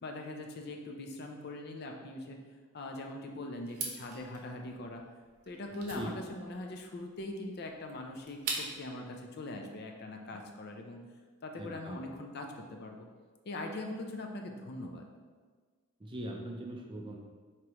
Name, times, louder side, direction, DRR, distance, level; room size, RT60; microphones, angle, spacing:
voice 1, 0.0-2.4 2.7-5.0 5.5-11.0 11.4-13.1 13.5-15.1, left 2 dB, 45° left, 3 dB, 0.4 m, -42 dB
sound 1, 3.7-9.0, right 4 dB, 90° right, 0.7 m, -42 dB
voice 2, 11.6-12.1 16.0-17.2, right 1 dB, 20° right, 0 dB, 0.4 m, -40 dB
4.8 x 3.0 x 2.9 m, 1.5 s
head